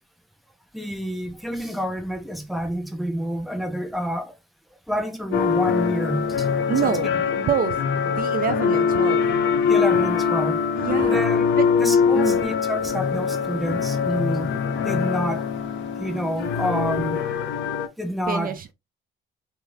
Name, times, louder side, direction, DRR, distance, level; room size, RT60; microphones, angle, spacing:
voice 1, 0.7-4.3 4.9-6.5 6.8-6.9 9.7-10.6 11.1-11.5 11.8-14.6 14.8-15.4 16.0-17.2 18.0-18.5, equal, ahead, 0.6 m, -28 dB
sound 1, 5.3-17.9, left 6 dB, 65° left, 0.5 m, -23 dB
voice 2, 6.7-9.2 10.7-11.2 11.6-11.7 12.1-12.4 18.3-18.7, right 8 dB, 45° right, 0.4 m, -27 dB
2.4 x 2.4 x 3.1 m
cardioid pair, 90°, 20 cm